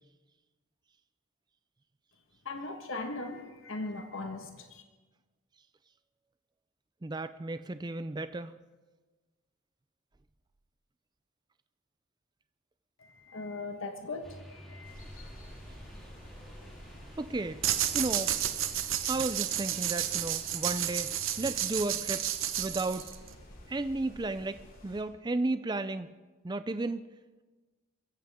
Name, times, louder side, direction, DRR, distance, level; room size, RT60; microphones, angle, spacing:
voice 1, 2.4-4.8 13.0-14.9, left 3 dB, 70° left, 5 dB, 1.6 m, -39 dB
voice 2, 7.0-8.6 17.2-17.6 17.9-18.3 19.1-22.3 22.6-23.1 23.7-26.1 26.4-27.1, right 2 dB, 20° right, 12 dB, 0.4 m, -33 dB
sound 1, 14.2-21.8, equal, ahead, 3.3 m, -51 dB
sound 2, 14.8-25.0, left 1 dB, 40° left, 2.8 m, -51 dB
sound 3, 17.6-23.3, right 11 dB, 70° right, 1.0 m, -31 dB
22.5 x 15.0 x 3.7 m, 1.3 s
head